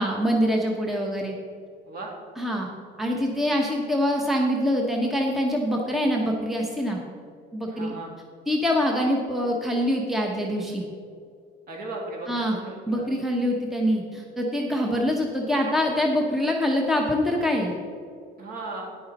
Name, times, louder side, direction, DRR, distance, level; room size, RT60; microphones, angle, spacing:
voice 1, 0.0-1.3 2.4-2.7 3.0-7.0 7.5-7.9 8.5-10.8 12.3-12.6 12.9-17.7, equal, ahead, 0 dB, 0.9 m, -24 dB
voice 2, 7.7-8.1 11.7-13.1 18.4-18.9, right 2 dB, 50° right, -1 dB, 2.4 m, -36 dB
9.9 x 9.4 x 4.1 m, 2.2 s
cardioid pair, 155°, 19 cm